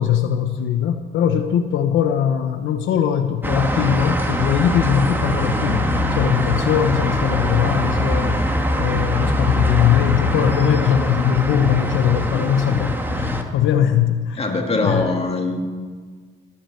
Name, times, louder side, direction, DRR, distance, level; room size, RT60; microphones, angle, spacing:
voice 1, 0.0-5.9 6.2-8.4 8.8-14.4 14.8-15.1, left 9 dB, 80° left, 7 dB, 0.9 m, -20 dB
sound 1, 3.4-13.4, equal, 10° right, 1.8 m, -22 dB
voice 2, 14.4-15.6, left 3 dB, 30° left, 2 dB, 2.6 m, -22 dB
17.0 x 8.6 x 7.8 m, 1.5 s
cardioid pair, 90°, 20 cm